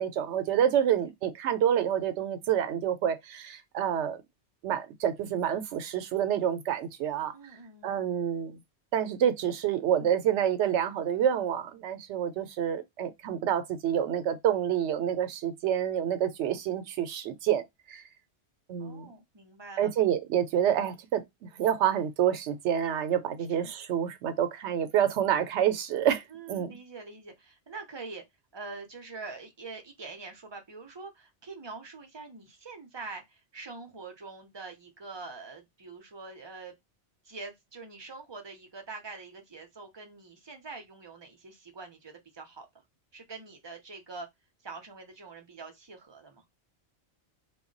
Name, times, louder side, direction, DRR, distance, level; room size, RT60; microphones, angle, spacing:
voice 1, 0.0-4.2 4.6-7.3 7.8-8.6 8.9-18.0 18.7-19.1 19.8-26.8, right 9 dB, 85° right, 0.9 m, -28 dB
voice 2, 7.3-8.0 18.8-19.9 23.6-23.7 26.3-28.2 28.5-36.7 37.2-42.7 43.1-44.3 44.6-46.4, right 3 dB, 30° right, 0.5 m, -44 dB
2.2 x 2.1 x 3.7 m
omnidirectional pair, 1.2 m